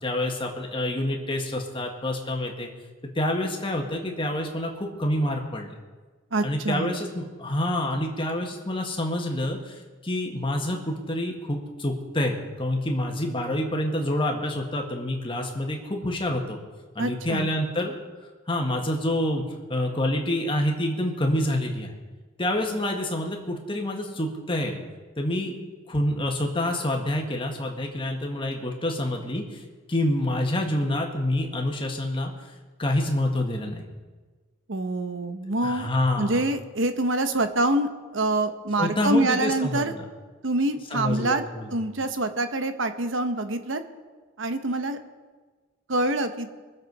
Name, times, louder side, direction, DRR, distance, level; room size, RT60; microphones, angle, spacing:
voice 1, 0.0-2.7 3.1-5.7 6.4-16.6 16.9-18.0 18.5-19.4 19.7-21.9 22.4-24.8 25.2-25.6 25.9-29.6 29.9-32.3 32.8-33.8 35.6-36.4 38.8-40.0 40.9-41.7, left 1 dB, 25° left, 2 dB, 1.7 m, -27 dB
voice 2, 6.3-7.0 17.0-17.5 34.7-35.9 36.2-40.0 40.4-41.4 41.7-43.8 44.4-45.0 45.9-46.5, right 2 dB, 70° right, 9 dB, 1.1 m, -26 dB
22.5 x 7.6 x 5.4 m, 1.4 s
head